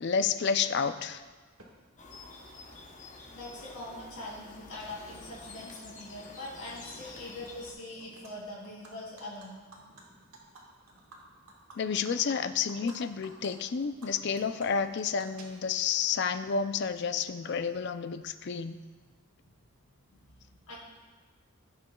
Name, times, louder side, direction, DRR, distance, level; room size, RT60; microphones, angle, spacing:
voice 1, 0.0-1.2 11.8-18.8, left 6 dB, 50° left, 10 dB, 0.4 m, -30 dB
Animal, 1.6-1.7 2.7-2.8 3.1-4.0 4.3-6.0 6.4-6.6 6.9-7.7 8.0-8.3 8.6-13.0 13.2-13.5 13.8-15.9, right 2 dB, 80° right, 1.6 m, -54 dB
sound 1, 2.0-7.7, left 3 dB, 35° left, 0.9 m, -49 dB
voice 2, 3.3-9.6 18.9-19.0 19.9-20.8, left 1 dB, 85° left, -5 dB, 2.4 m, -43 dB
16.5 x 6.6 x 2.3 m, 1.4 s
head